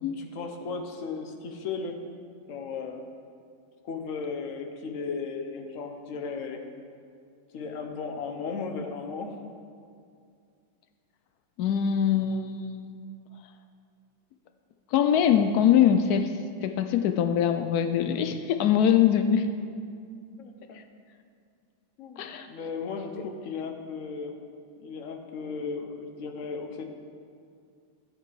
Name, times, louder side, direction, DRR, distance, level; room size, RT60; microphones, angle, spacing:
voice 1, 0.1-2.0 2.5-3.0 3.8-6.6 7.5-9.4 20.4-20.8 22.0-24.4 24.8-26.8, left 5 dB, 55° left, 5 dB, 1.0 m, -35 dB
voice 2, 11.6-12.9 14.9-16.3 16.6-19.5 22.2-22.5 23.2-23.3, left 9 dB, 90° left, 8 dB, 0.8 m, -23 dB
12.5 x 8.1 x 4.8 m, 2.3 s
omnidirectional pair, 2.2 m